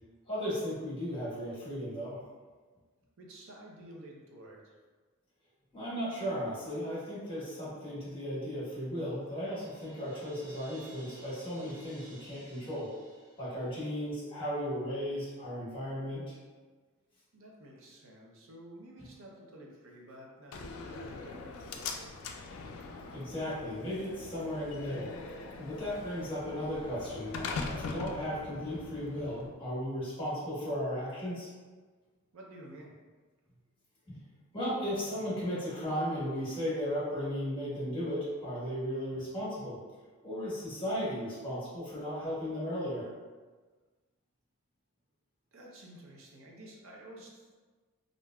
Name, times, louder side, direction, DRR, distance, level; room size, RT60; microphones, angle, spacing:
voice 1, 0.3-2.2 5.7-12.9 13.4-16.4 22.5-22.6 23.1-31.5 34.1-34.2 34.5-39.8 40.2-43.1, equal, 25° left, -8 dB, 1.1 m, -36 dB
voice 2, 3.2-4.8 17.3-22.1 32.3-32.9 45.5-47.5, right 1 dB, 65° right, -2 dB, 0.5 m, -51 dB
Crash cymbal, 9.2-14.1, right 1 dB, 15° right, 0.5 m, -55 dB
Slam, 20.5-29.5, left 4 dB, 70° left, 0.3 m, -42 dB
3.3 x 2.5 x 2.2 m, 1.4 s
head